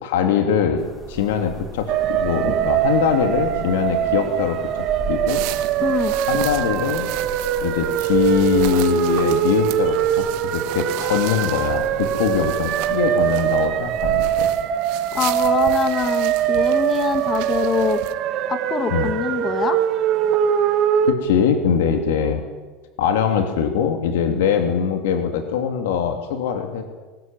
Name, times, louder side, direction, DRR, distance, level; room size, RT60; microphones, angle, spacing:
voice 1, 0.0-5.4 6.3-7.1 7.6-14.5 18.9-19.1 21.0-22.4 23.0-26.9, left 7 dB, 90° left, 5 dB, 3.0 m, -22 dB
sound 1, 0.8-14.6, equal, 5° right, 3.4 m, -38 dB
sound 2, 1.9-21.1, right 10 dB, 40° right, 1.8 m, -22 dB
sound 3, 5.3-18.1, right 16 dB, 55° right, 1.7 m, -36 dB
voice 2, 5.8-6.1 15.1-18.0 18.5-19.8, left 6 dB, 20° left, 10 dB, 1.9 m, -24 dB
24.0 x 19.5 x 9.2 m, 1.3 s
supercardioid pair, 165°, 0 cm